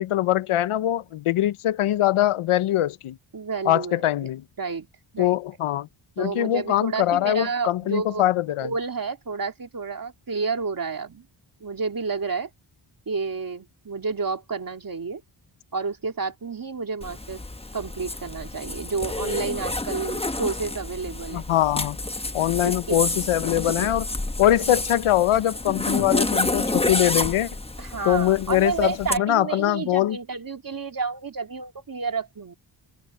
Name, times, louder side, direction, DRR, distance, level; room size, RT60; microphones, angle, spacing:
voice 1, 0.0-3.2 3.7-4.4 5.2-5.9 6.2-8.7 21.3-22.0 22.3-24.0 24.4-27.5 28.1-30.2, left 13 dB, 85° left, 0.7 m, -22 dB
voice 2, 3.3-4.3 4.6-4.9 5.1-5.4 6.2-8.3 8.6-11.2 11.6-12.5 13.1-15.2 15.7-17.4 17.7-21.5 22.6-23.0 23.7-23.9 27.8-32.5, right 4 dB, 45° right, 2.7 m, -30 dB
Zipper (clothing), 17.0-29.2, left 2 dB, 10° left, 1.1 m, -29 dB
cardioid pair, 85°, 49 cm